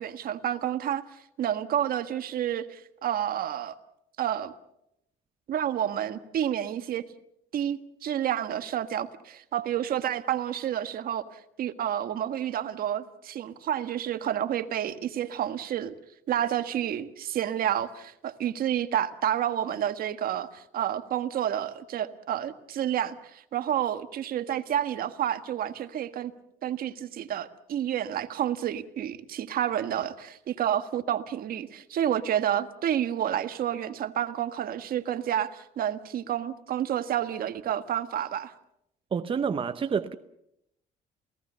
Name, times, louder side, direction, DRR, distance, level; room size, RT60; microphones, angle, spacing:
voice 1, 0.0-3.7 4.2-4.5 5.5-7.0 7.5-15.9 16.3-26.3 26.6-38.5, right 10 dB, 60° right, 1.5 m, -30 dB
voice 2, 39.1-40.1, right 6 dB, 30° right, 0.9 m, -28 dB
29.0 x 18.0 x 6.9 m
cardioid pair, 110°, 17 cm